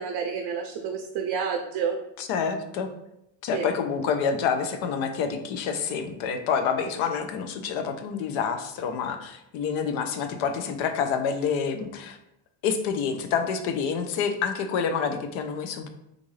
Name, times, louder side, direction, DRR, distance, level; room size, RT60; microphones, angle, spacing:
voice 1, 0.0-2.0 3.5-3.7, right 6 dB, 55° right, 4 dB, 0.5 m, -29 dB
voice 2, 2.2-2.9 3.4-12.2 12.6-15.9, left 6 dB, 75° left, 8 dB, 0.6 m, -28 dB
3.5 x 2.6 x 3.1 m, 0.83 s
cardioid pair, 120°, 47 cm